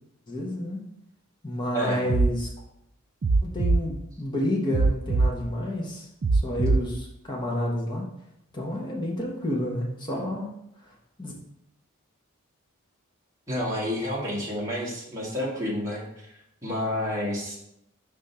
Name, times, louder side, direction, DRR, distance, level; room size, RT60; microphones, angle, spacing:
voice 1, 0.3-0.8 1.4-2.5 3.4-8.1 8.5-10.5 10.8-10.9 11.2-11.3, left 1 dB, 20° left, -3 dB, 1.0 m, -30 dB
sound 1, 2.1-2.3 3.2-3.8 4.7-5.3 6.2-6.8, right 3 dB, 40° right, 0.3 m, -21 dB
voice 2, 13.5-16.0 16.6-17.6, equal, 15° right, -5 dB, 1.5 m, -29 dB
5.0 x 3.5 x 5.5 m, 0.79 s
head